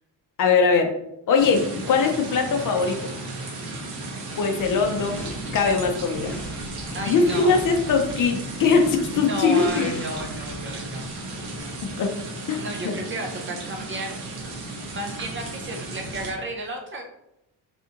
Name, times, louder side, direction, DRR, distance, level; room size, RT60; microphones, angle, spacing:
voice 1, 0.4-0.9 1.3-3.0 4.4-5.2 5.5-6.3 6.9-9.9 12.0-12.2 12.5-12.6, left 5 dB, 50° left, 5 dB, 0.6 m, -21 dB
sound 1, 1.4-16.3, right 2 dB, 60° right, 1.0 m, -35 dB
sound 2, 4.5-12.1, equal, 5° left, 0.9 m, -37 dB
voice 2, 6.9-7.6 9.1-11.1 12.5-14.4 14.9-17.0, right 2 dB, 30° right, 2 dB, 0.5 m, -33 dB
4.1 x 3.5 x 2.8 m, 0.82 s
cardioid pair, 160°, 43 cm